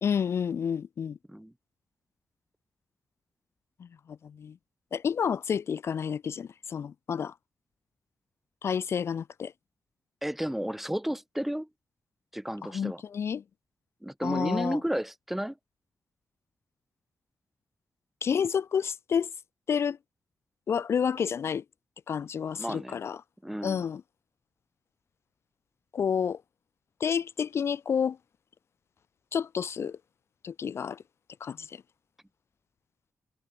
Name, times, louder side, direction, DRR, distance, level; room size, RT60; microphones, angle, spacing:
voice 1, 0.0-1.2 3.8-4.6 4.9-7.3 8.6-9.5 12.7-13.4 14.2-14.8 18.2-19.3 19.7-20.0 20.7-21.6 22.1-23.2 23.6-24.0 25.9-26.4 27.0-28.2 29.3-30.0 30.4-31.0 31.4-31.8, left 7 dB, 50° left, 0.3 m, -30 dB
voice 2, 10.2-11.7 12.3-13.0 14.0-15.6 22.6-23.0 23.4-23.9, equal, 5° right, 0.6 m, -32 dB
wide cardioid pair, 155°, 6 cm